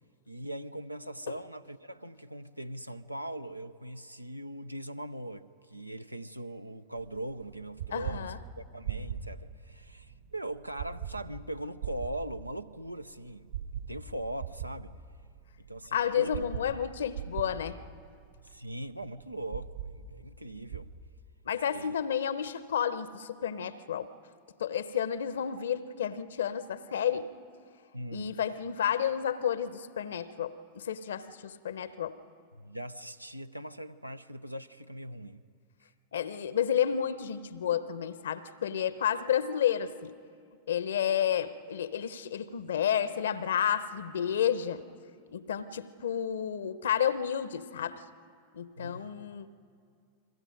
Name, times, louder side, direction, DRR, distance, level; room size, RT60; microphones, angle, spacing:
voice 1, 0.3-13.5 13.9-15.0 15.7-16.5 18.4-20.9 21.7-21.9 27.9-28.4 32.6-35.4 48.8-49.3, right 1 dB, 85° right, 0.6 m, -40 dB
sound 1, 7.0-21.0, right 8 dB, 70° right, 3.7 m, -42 dB
voice 2, 7.9-8.4 15.9-17.8 21.5-24.1 24.6-27.3 28.1-32.2 36.1-40.1 40.7-44.8 45.3-48.0 48.5-49.5, left 9 dB, 65° left, 0.8 m, -31 dB
29.5 x 22.0 x 5.2 m
figure-of-eight pair, 90°, 0 cm